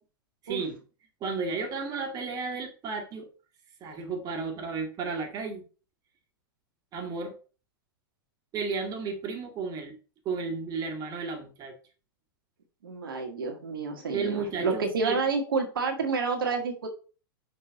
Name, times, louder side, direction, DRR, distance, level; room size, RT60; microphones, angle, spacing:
voice 1, 0.4-0.8 1.2-3.3 3.8-5.6 6.9-7.3 8.5-10.0 10.2-11.7 14.1-15.2, right 4 dB, 35° right, 1.7 m, -33 dB
voice 2, 12.8-16.9, right 4 dB, 75° right, 1.5 m, -29 dB
5.8 x 4.4 x 4.0 m
hypercardioid pair, 100°, 12 cm